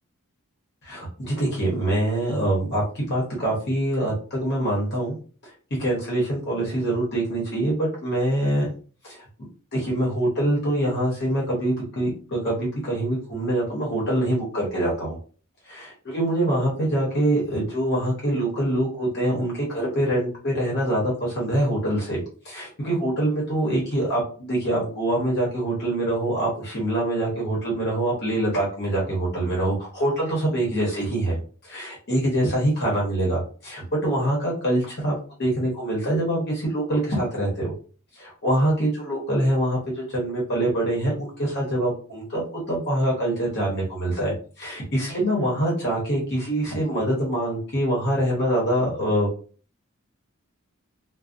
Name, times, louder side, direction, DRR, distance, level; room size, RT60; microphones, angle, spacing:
voice 1, 0.8-5.2 5.8-8.7 9.0-15.2 15.7-31.4 31.6-37.7 38.1-49.3, right 1 dB, 50° left, -4 dB, 0.9 m, -25 dB
2.6 x 2.0 x 2.4 m, 0.40 s
head